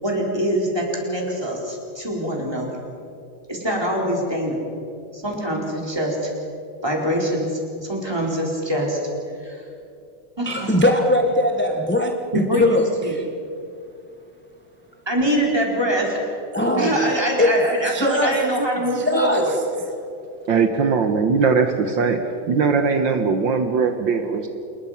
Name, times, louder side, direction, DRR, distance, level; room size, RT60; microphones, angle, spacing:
voice 1, 0.0-2.7 3.5-4.6 5.1-6.3 6.8-9.0 9.4-9.6 10.4-10.8 12.3-13.1 15.1-16.4 16.8-19.5, equal, 10° right, -2 dB, 4.3 m, -24 dB
voice 2, 10.4-13.2 16.5-17.1 17.4-18.4 18.9-19.5, left 1 dB, 10° left, 3 dB, 0.9 m, -20 dB
voice 3, 20.5-22.2 22.5-24.5, right 5 dB, 65° right, 6 dB, 1.8 m, -20 dB
27.5 x 21.0 x 5.8 m, 2.6 s
omnidirectional pair, 2.3 m